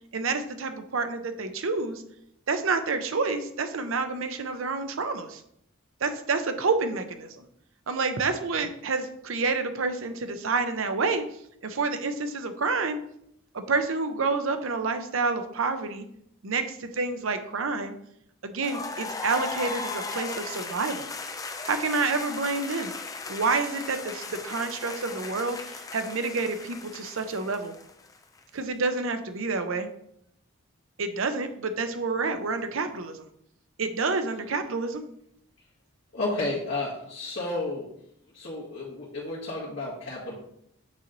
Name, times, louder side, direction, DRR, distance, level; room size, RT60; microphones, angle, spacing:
voice 1, 0.1-2.0 2.5-5.4 6.0-7.5 7.9-11.2 11.6-13.0 13.5-16.1 16.4-17.9 18.4-21.1 21.6-22.9 23.3-25.6 25.9-27.7 28.5-29.9 31.0-33.2 33.8-35.0, right 4 dB, 75° right, 8 dB, 0.7 m, -28 dB
sound 1, 18.6-28.4, left 4 dB, 15° left, 0.4 m, -37 dB
voice 2, 36.1-37.9 38.3-40.3, left 2 dB, 60° left, -9 dB, 1.7 m, -32 dB
8.4 x 3.1 x 4.0 m, 0.72 s
head